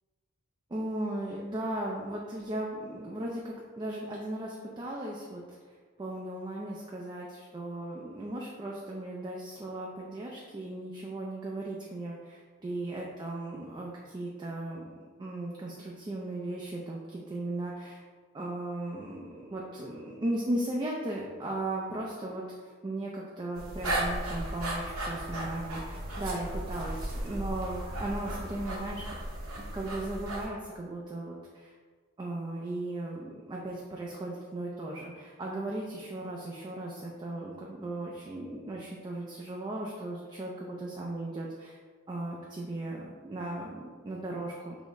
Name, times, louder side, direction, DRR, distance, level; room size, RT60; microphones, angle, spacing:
voice 1, 0.7-5.7 6.0-14.9 15.2-18.0 18.3-29.0 29.7-31.7 32.2-41.8 42.1-44.8, right 1 dB, 20° right, -3 dB, 0.3 m, -37 dB
sound 1, 23.6-30.5, right 1 dB, 85° right, 0.8 m, -35 dB
5.2 x 2.0 x 3.5 m, 1.5 s
head